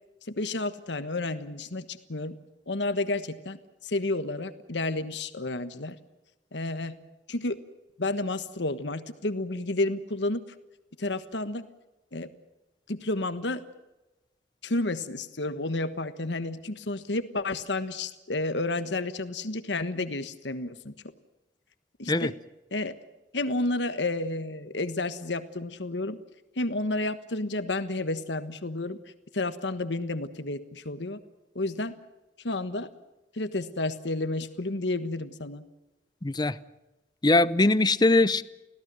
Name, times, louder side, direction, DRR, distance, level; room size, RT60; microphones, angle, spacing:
voice 1, 0.3-2.4 2.7-6.0 6.5-7.0 7.3-7.6 8.0-10.4 11.0-11.6 12.1-12.3 12.9-13.6 14.6-20.9 22.0-22.3 22.7-22.9 23.3-26.2 26.5-29.0 29.3-31.2 31.5-31.9 32.4-32.9 33.3-35.6, left 2 dB, 90° left, 1.4 m, -31 dB
voice 2, 36.2-36.6 37.2-38.4, left 2 dB, 25° left, 0.7 m, -21 dB
26.0 x 17.0 x 7.7 m
head